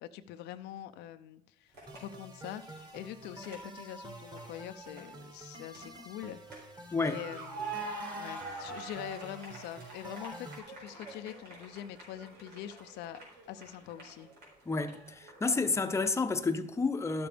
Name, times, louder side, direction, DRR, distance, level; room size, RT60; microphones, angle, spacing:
voice 1, 0.0-6.7 7.0-13.2 13.5-14.3, left 11 dB, 85° left, 0.6 m, -44 dB
sound 1, 1.7-2.0 2.5-4.0 4.4-5.0 5.4-6.6 6.9-15.7 16.0-16.1, right 3 dB, 80° right, 4.2 m, -45 dB
sound 2, 1.9-10.6, right 1 dB, 25° right, 1.8 m, -49 dB
voice 2, 6.9-7.2 14.7-17.3, left 4 dB, 15° left, 0.7 m, -30 dB
12.0 x 7.0 x 5.0 m
cardioid pair, 110°, 17 cm